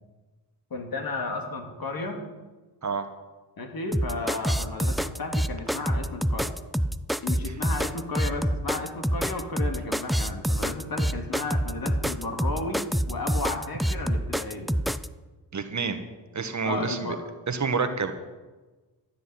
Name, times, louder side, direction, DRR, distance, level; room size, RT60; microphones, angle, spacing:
voice 1, 0.7-2.2 3.6-6.5 7.2-14.7 15.7-15.8 16.6-17.2, left 3 dB, 55° left, 3 dB, 2.6 m, -33 dB
sound 1, 3.9-15.1, equal, ahead, 0.3 m, -26 dB
voice 2, 15.5-16.0 16.3-17.1 17.5-18.1, right 5 dB, 40° right, 8 dB, 1.4 m, -28 dB
13.0 x 6.7 x 9.7 m, 1.2 s
cardioid pair, 80°, 42 cm